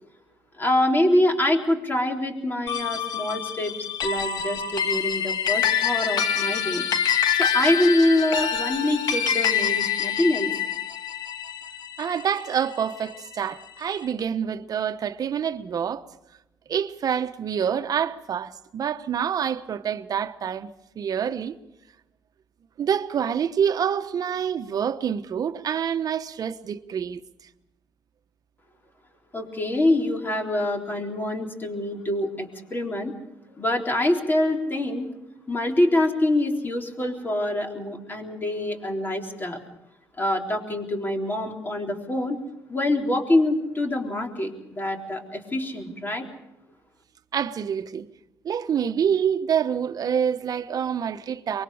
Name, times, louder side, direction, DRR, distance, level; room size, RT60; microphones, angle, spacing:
voice 1, 0.6-3.7 4.0-6.9 7.4-10.5 29.3-33.2 33.6-35.1 35.5-39.6 40.2-42.4 42.7-46.3, left 1 dB, 25° left, 3.8 m, -25 dB
sound 1, 2.7-13.3, left 8 dB, 65° left, 1.5 m, -26 dB
voice 2, 12.0-16.1 16.7-21.6 22.8-27.2 47.3-48.1 48.4-51.6, right 8 dB, 55° right, 1.1 m, -27 dB
24.0 x 22.0 x 5.0 m
cardioid pair, 80°, 8 cm